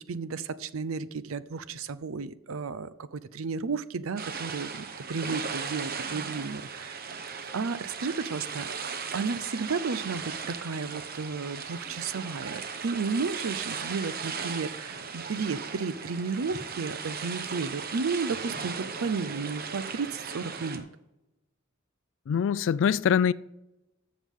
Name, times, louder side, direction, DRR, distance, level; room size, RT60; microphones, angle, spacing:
voice 1, 0.1-7.1 7.5-8.7 9.1-20.8, right 4 dB, 75° right, 0.5 m, -33 dB
sound 1, 4.2-20.8, right 5 dB, 45° right, 1.0 m, -37 dB
voice 2, 22.3-23.3, left 7 dB, 60° left, 0.3 m, -23 dB
13.5 x 7.3 x 3.7 m
head